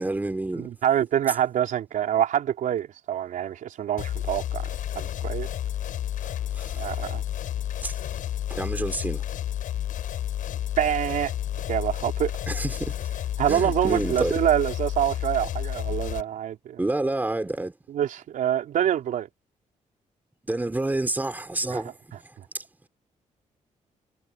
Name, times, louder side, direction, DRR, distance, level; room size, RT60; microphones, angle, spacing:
voice 1, 0.0-0.7 6.5-6.8 7.8-7.9 8.5-9.2 12.5-13.1 13.5-14.4 16.8-17.7 20.5-22.2 22.5-22.6, right 2 dB, 15° right, 3.5 m, -28 dB
voice 2, 0.6-4.7 4.9-5.5 6.8-7.2 10.8-11.3 11.7-12.3 13.4-16.8 17.9-19.3 21.7-21.8 22.4-22.5, right 10 dB, 85° right, 4.6 m, -26 dB
sound 1, 4.0-16.2, left 11 dB, 85° left, 7.5 m, -31 dB
cardioid pair, 125°, 13 cm